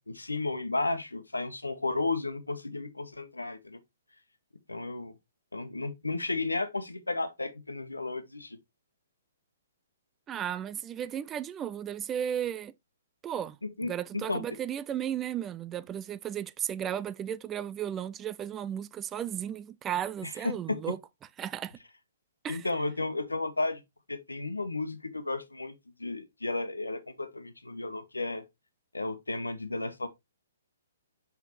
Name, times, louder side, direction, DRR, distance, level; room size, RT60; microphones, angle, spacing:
voice 1, 0.0-3.8 4.7-5.1 5.5-8.6 13.8-14.4 20.2-20.9 22.5-23.8 24.1-25.7 26.0-28.4 28.9-30.1, left 2 dB, 85° left, 1.1 m, -33 dB
voice 2, 10.3-12.7 13.2-13.6 13.8-21.0 21.4-21.8 22.4-22.6, right 10 dB, 20° right, 0.3 m, -34 dB
6.2 x 5.7 x 3.1 m
figure-of-eight pair, 125°, 0 cm